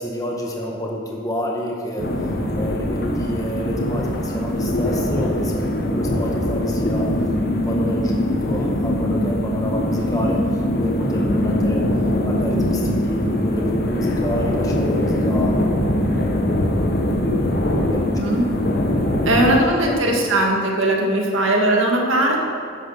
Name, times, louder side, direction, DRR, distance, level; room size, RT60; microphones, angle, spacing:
voice 1, 0.0-2.1 2.5-7.1 7.5-10.4 10.8-11.8 12.2-15.7 17.9-18.4 19.1-20.2, equal, 15° left, -1 dB, 1.3 m, -29 dB
sound 1, 2.0-19.6, left 1 dB, 50° left, 1.3 m, -22 dB
voice 2, 19.2-22.4, right 1 dB, 75° right, 0 dB, 2.0 m, -19 dB
11.0 x 9.7 x 5.8 m, 2.4 s
head